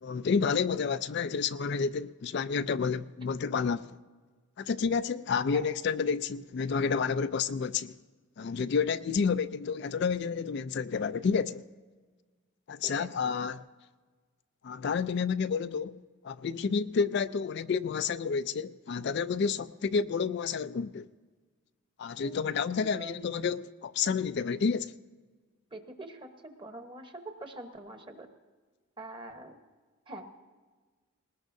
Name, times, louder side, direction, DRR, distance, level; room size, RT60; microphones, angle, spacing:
voice 1, 0.0-4.0 4.6-8.0 8.4-11.6 12.7-13.6 14.6-16.0 16.2-21.1 22.0-24.9, left 5 dB, 50° left, 0.3 m, -30 dB
voice 2, 22.2-22.6 22.9-23.1 25.7-28.3 29.0-29.6 30.1-30.3, right 1 dB, 20° right, 1.1 m, -44 dB
20.0 x 19.5 x 2.7 m
head